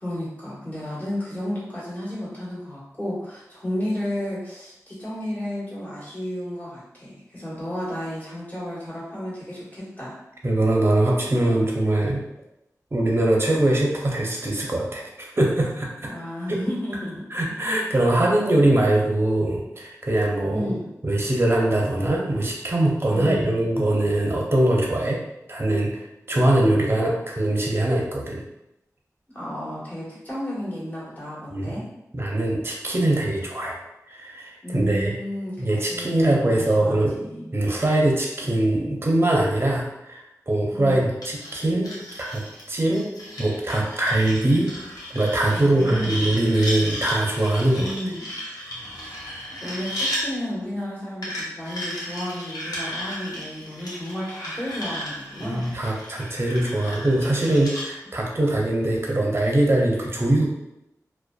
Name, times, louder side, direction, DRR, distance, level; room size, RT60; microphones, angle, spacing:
voice 1, 0.0-10.2 16.1-17.5 20.5-20.9 23.1-23.7 29.3-31.8 34.6-37.5 40.7-41.0 45.5-46.2 47.7-48.3 49.6-55.7, left 1 dB, 25° left, -8 dB, 1.3 m, -32 dB
voice 2, 10.4-12.2 12.9-15.9 16.5-16.6 17.3-20.7 21.0-25.2 25.5-28.4 31.5-31.8 32.1-33.8 34.1-35.1 35.6-37.1 37.5-42.0 42.3-42.4 42.7-44.7 45.1-47.9 55.4-60.5, right 1 dB, 40° right, -2 dB, 0.6 m, -22 dB
sound 1, 41.2-50.2 51.2-57.9, equal, 80° left, 0.6 m, -34 dB
2.4 x 2.2 x 2.3 m, 0.87 s
cardioid pair, 40°, 6 cm